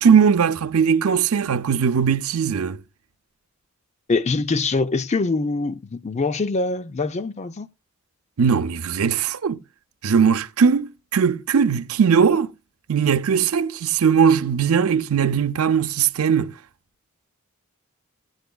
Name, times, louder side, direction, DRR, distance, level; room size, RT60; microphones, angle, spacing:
voice 1, 0.0-2.8 8.4-9.6 10.0-12.5 12.9-16.5, right 6 dB, 80° right, 0.5 m, -19 dB
voice 2, 4.1-7.7, left 3 dB, 30° left, 0.5 m, -24 dB
17.0 x 8.0 x 2.2 m
head